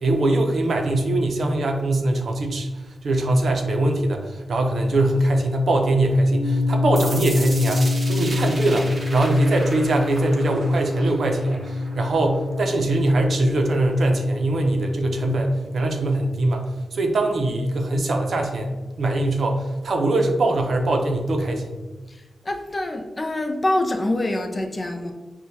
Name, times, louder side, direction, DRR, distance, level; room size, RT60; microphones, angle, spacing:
voice 1, 0.0-21.8, right 1 dB, 60° right, 3 dB, 0.6 m, -22 dB
sound 1, 6.3-16.5, left 3 dB, 80° left, 0.8 m, -27 dB
sound 2, 7.0-12.9, right 1 dB, 30° right, 0.8 m, -36 dB
voice 2, 22.1-25.1, left 1 dB, 25° left, 4 dB, 0.4 m, -25 dB
6.2 x 2.2 x 2.7 m, 1.3 s
wide cardioid pair, 135°, 0 cm